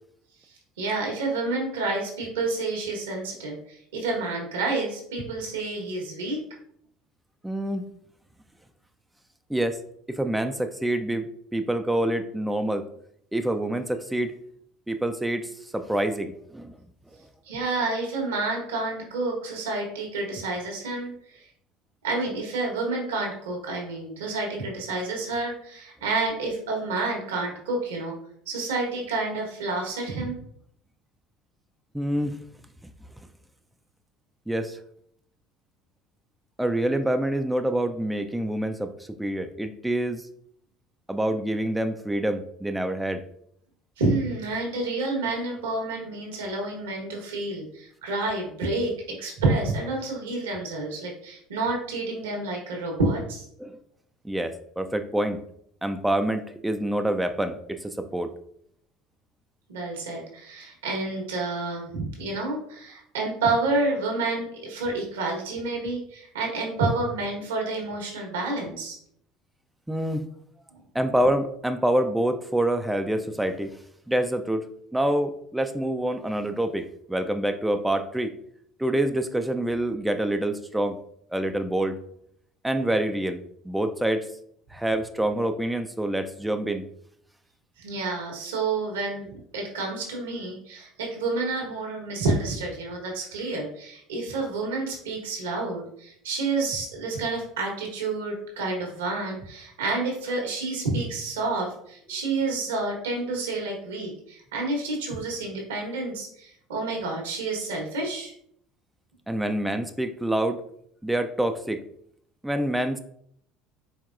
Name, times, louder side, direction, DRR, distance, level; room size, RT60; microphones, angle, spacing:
voice 1, 0.8-6.4 17.5-21.4 22.0-28.1 28.5-30.4 44.0-53.4 59.7-69.0 87.8-108.3, right 3 dB, 90° right, 0 dB, 1.2 m, -29 dB
voice 2, 7.4-7.8 9.5-9.8 10.1-12.9 13.3-14.3 14.9-16.8 31.9-32.4 34.5-34.8 36.6-40.3 41.1-43.2 53.6-53.8 54.2-55.4 55.8-58.3 69.9-70.3 70.9-73.8 74.1-78.3 78.8-81.0 81.3-82.0 82.6-84.3 84.7-86.8 109.3-110.6 111.0-111.8 112.4-113.0, right 1 dB, 5° right, 7 dB, 0.4 m, -26 dB
4.6 x 3.5 x 2.5 m, 0.68 s
hypercardioid pair, 75°, 0 cm